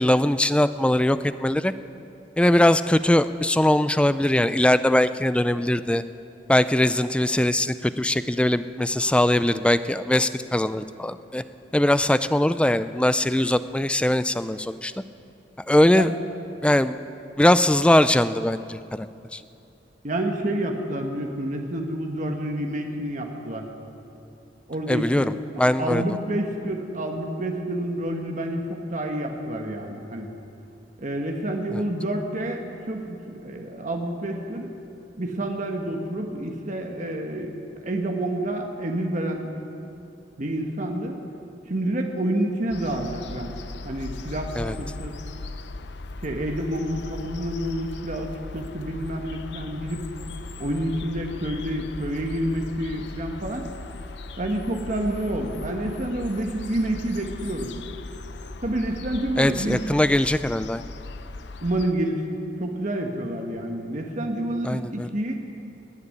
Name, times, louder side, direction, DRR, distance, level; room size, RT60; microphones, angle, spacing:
voice 1, 0.0-1.7 2.4-6.0 6.5-11.4 11.7-14.9 15.7-16.1 16.6-17.0 17.4-19.1 19.3-19.4 24.9-26.0 31.7-31.8 44.6-44.8 59.4-60.8 64.6-65.1, left 1 dB, 5° left, 13 dB, 0.4 m, -21 dB
voice 2, 20.0-23.6 24.7-25.3 25.8-30.3 31.0-34.7 35.2-37.6 37.8-39.5 40.4-41.2 41.7-43.5 43.8-44.5 44.8-45.2 46.2-50.0 50.6-53.7 54.4-57.7 58.6-59.8 61.6-62.2 62.6-65.3, right 1 dB, 45° right, 3 dB, 1.4 m, -28 dB
sound 1, 42.7-61.9, left 3 dB, 70° left, 0.6 m, -38 dB
19.5 x 6.9 x 9.8 m, 2.7 s
head